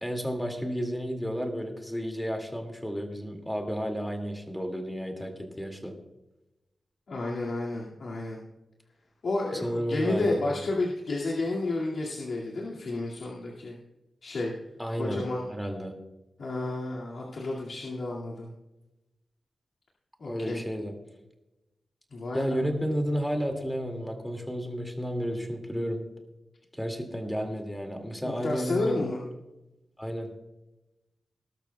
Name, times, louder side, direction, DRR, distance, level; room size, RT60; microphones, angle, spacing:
voice 1, 0.0-5.9 9.5-10.6 14.8-15.2 15.5-16.0 20.3-20.9 22.3-26.0 26.7-29.1 30.0-30.3, equal, 5° left, 4 dB, 2.3 m, -32 dB
voice 2, 7.1-8.4 9.2-13.8 14.2-14.5 15.0-15.5 16.4-18.5 20.2-20.6 22.1-22.6 28.2-29.2, left 2 dB, 70° left, -5 dB, 2.2 m, -31 dB
20.0 x 12.0 x 2.3 m, 0.98 s
wide cardioid pair, 115°, 0 cm